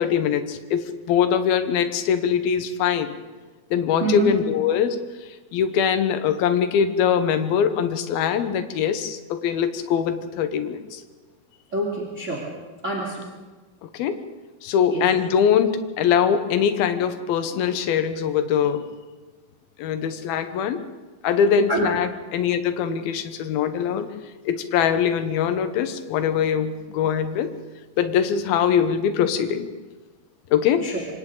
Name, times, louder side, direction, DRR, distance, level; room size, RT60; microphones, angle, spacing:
voice 1, 0.0-3.1 3.7-5.0 5.5-11.0 13.8-14.2 14.6-18.9 19.8-20.8 21.2-24.1 24.5-27.5 28.0-29.7 30.5-30.8, left 8 dB, 80° left, 9 dB, 2.9 m, -22 dB
voice 2, 4.0-4.3 11.7-12.4 12.8-13.2 14.9-15.0 21.5-21.9 22.8-23.0 30.8-31.0, right 2 dB, 20° right, -2 dB, 2.9 m, -26 dB
26.0 x 26.0 x 3.9 m, 1.3 s
omnidirectional pair, 4.4 m